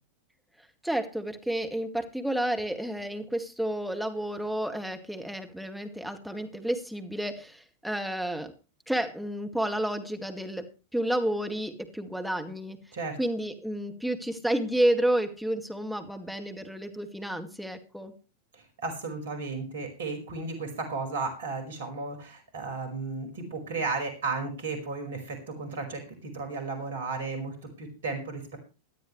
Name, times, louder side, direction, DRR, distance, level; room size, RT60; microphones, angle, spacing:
voice 1, 0.8-8.5 8.9-10.7 10.9-12.8 13.2-18.1, right 1 dB, ahead, 4 dB, 2.2 m, -30 dB
voice 2, 18.5-28.6, right 4 dB, 60° right, 5 dB, 5.1 m, -34 dB
18.5 x 12.5 x 3.2 m, 0.33 s
figure-of-eight pair, 90°, 0 cm